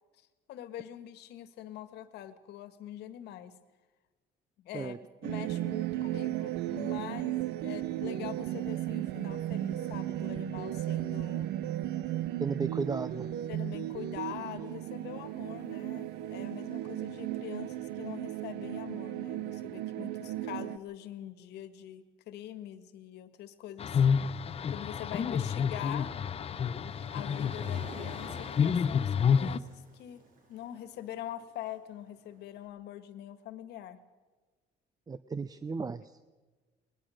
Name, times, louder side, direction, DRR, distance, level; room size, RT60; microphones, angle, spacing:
voice 1, 0.2-3.5 4.6-4.9 5.2-11.5 13.5-24.4 24.7-26.1 27.1-30.2 30.5-34.0, left 12 dB, 80° left, 12 dB, 1.6 m, -44 dB
sound 1, 5.2-20.8, right 13 dB, 85° right, 0.8 m, -35 dB
voice 2, 12.4-13.3 35.1-36.2, right 4 dB, 20° right, 13 dB, 0.6 m, -35 dB
sound 2, 23.8-29.6, left 7 dB, 35° left, 0.8 m, -29 dB
Waves surf, 25.4-32.5, right 2 dB, 55° right, 4.2 m, -52 dB
21.0 x 20.5 x 6.5 m, 1.3 s
cardioid pair, 110°, 17 cm